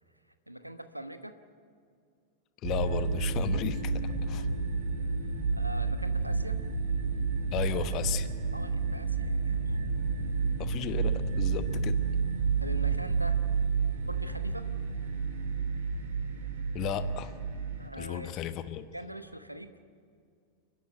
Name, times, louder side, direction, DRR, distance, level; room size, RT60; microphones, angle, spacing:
voice 1, 0.5-1.4 5.5-6.6 8.5-9.9 12.6-13.4 14.0-14.7 17.8-18.4 18.9-19.8, right 1 dB, 85° right, 10 dB, 1.1 m, -42 dB
voice 2, 2.6-3.9 4.3-4.5 7.5-8.3 10.6-12.0 16.7-17.3 18.0-18.8, left 10 dB, 35° left, 11 dB, 1.0 m, -34 dB
sound 1, 2.6-17.9, right 5 dB, 60° right, 2.4 m, -30 dB
30.0 x 10.5 x 9.1 m, 2.2 s
figure-of-eight pair, 90°, 0 cm